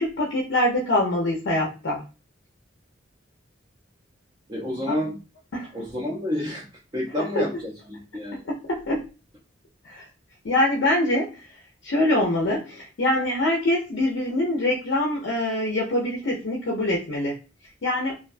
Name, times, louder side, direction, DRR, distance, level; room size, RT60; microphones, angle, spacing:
voice 1, 0.0-2.0 5.5-5.7 7.4-7.5 8.5-9.1 9.8-10.1 10.4-11.4 11.8-17.4 17.8-18.1, left 1 dB, 70° left, -1 dB, 0.5 m, -24 dB
voice 2, 4.5-5.2 5.7-6.7 6.9-8.4, left 1 dB, 25° right, -4 dB, 0.5 m, -29 dB
2.5 x 2.1 x 2.4 m, 0.32 s
head